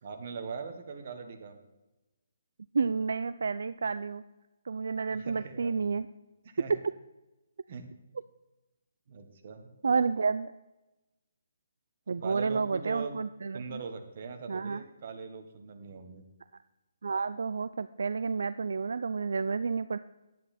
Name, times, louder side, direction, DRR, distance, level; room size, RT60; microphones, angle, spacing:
voice 1, 0.0-1.6 5.1-5.9 6.4-6.7 7.7-7.8 9.1-9.7 12.1-13.2 13.5-16.2, right 5 dB, 40° right, 6 dB, 1.3 m, -41 dB
voice 2, 2.7-4.2 4.7-6.1 9.8-10.5 12.1-13.8 14.5-14.8 17.0-20.0, right 5 dB, 75° right, 14 dB, 0.3 m, -30 dB
10.0 x 9.1 x 4.2 m, 1.0 s
hypercardioid pair, 170°, 0 cm